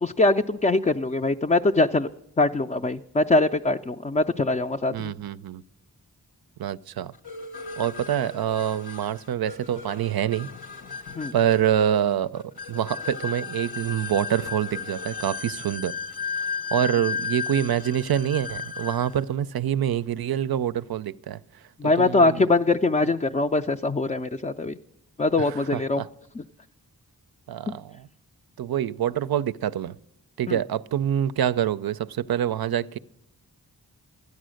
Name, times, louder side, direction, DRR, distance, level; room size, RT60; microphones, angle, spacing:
voice 1, 0.0-2.1 2.4-5.1 11.2-11.3 21.8-24.7 25.2-26.0 26.4-26.5 30.5-30.6, left 2 dB, 20° left, 0.4 m, -22 dB
voice 2, 4.9-5.6 6.6-7.1 7.8-10.5 11.3-15.9 16.7-21.4 21.8-22.5 25.4-26.1 27.5-28.1 28.6-30.0 30.4-33.0, right 10 dB, 70° right, 0.5 m, -26 dB
sound 1, 7.2-19.2, left 5 dB, 75° left, 1.2 m, -35 dB
13.0 x 9.6 x 6.3 m
cardioid pair, 40°, 38 cm